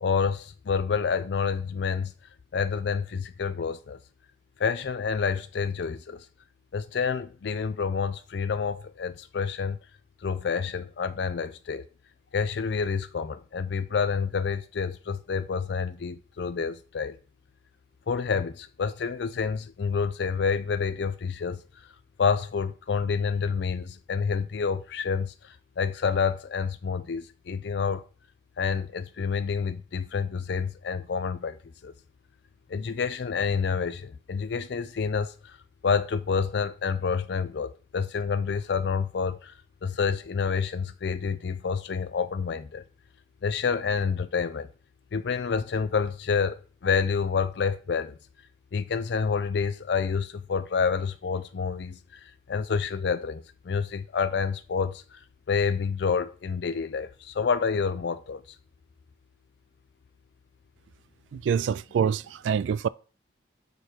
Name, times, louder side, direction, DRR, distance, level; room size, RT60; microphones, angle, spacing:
voice 1, 0.0-2.1 2.5-4.0 4.6-6.3 6.7-9.8 10.2-11.8 12.3-17.2 18.1-21.6 22.2-28.0 28.6-31.9 32.7-35.5 35.8-42.8 43.4-44.7 45.1-48.2 48.7-55.2 55.5-58.4, left 5 dB, 65° left, 0.4 m, -28 dB
voice 2, 61.3-62.9, right 7 dB, 85° right, 0.3 m, -26 dB
6.5 x 5.1 x 4.4 m
head